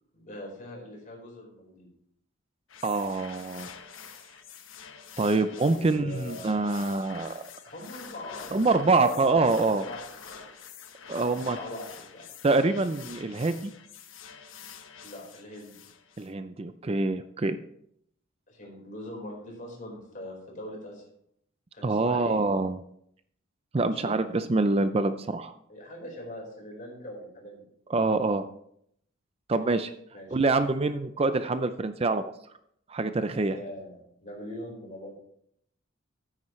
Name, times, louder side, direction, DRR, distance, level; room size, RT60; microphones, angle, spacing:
voice 1, 0.1-1.9 5.5-6.4 7.7-9.2 9.6-10.5 11.2-12.2 15.0-15.7 18.5-21.0 21.7-22.4 23.9-24.7 25.7-27.7 30.1-30.4 33.5-35.1, left 1 dB, 40° left, -1 dB, 4.7 m, -42 dB
sound 1, 2.7-16.3, left 7 dB, 90° left, 1.1 m, -47 dB
voice 2, 2.8-3.7 5.2-7.5 8.5-9.8 11.1-11.6 12.4-13.7 16.2-17.6 21.8-22.8 23.7-25.5 27.9-28.4 29.5-29.9 30.3-32.3 32.9-33.6, right 3 dB, 30° right, 10 dB, 0.5 m, -25 dB
14.0 x 9.7 x 3.2 m, 0.70 s
head